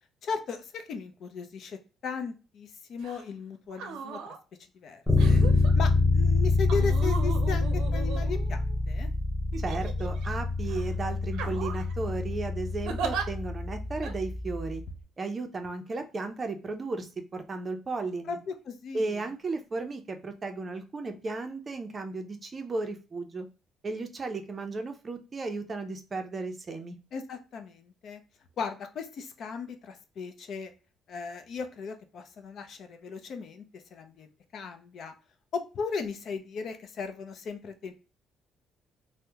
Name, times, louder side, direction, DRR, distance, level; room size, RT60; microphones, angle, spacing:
voice 1, 0.2-4.2 4.7-5.4 5.7-8.6 8.9-9.1 18.3-19.2 27.1-28.2 28.6-30.7 31.1-34.3 34.5-35.1 35.5-37.9, left 5 dB, 55° left, 6 dB, 0.5 m, -37 dB
sound 1, 3.0-3.2 3.7-4.4 5.2-5.7 6.7-8.7 9.5-10.3 10.7-10.9 11.3-11.9 12.8-13.2 14.0-14.1, right 6 dB, 90° right, 0.6 m, -37 dB
Bass guitar, 5.1-14.9, left 3 dB, 5° left, 0.8 m, -26 dB
voice 2, 9.6-14.8 15.2-18.4 18.9-23.5 23.8-27.0, right 3 dB, 30° right, 6 dB, 0.5 m, -35 dB
2.8 x 2.1 x 3.4 m, 0.33 s
cardioid pair, 135°, 0 cm